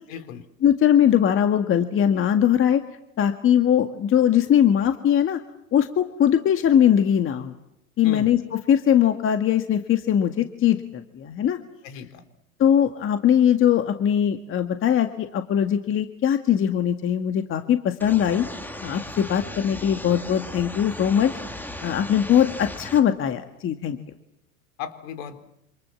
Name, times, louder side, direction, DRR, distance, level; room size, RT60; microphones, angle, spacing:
voice 1, 0.1-0.5 8.0-8.3 11.8-12.2 24.8-25.4, left 7 dB, 60° left, 9 dB, 4.3 m, -36 dB
voice 2, 0.6-2.8 3.2-5.4 5.7-7.5 8.0-8.4 8.7-11.6 12.6-18.5 18.8-21.3 21.8-24.0, left 9 dB, 30° left, 6 dB, 2.0 m, -20 dB
sound 1, 18.0-23.0, left 1 dB, 5° left, 2.5 m, -36 dB
28.0 x 27.0 x 7.3 m, 0.80 s
hypercardioid pair, 115°, 43 cm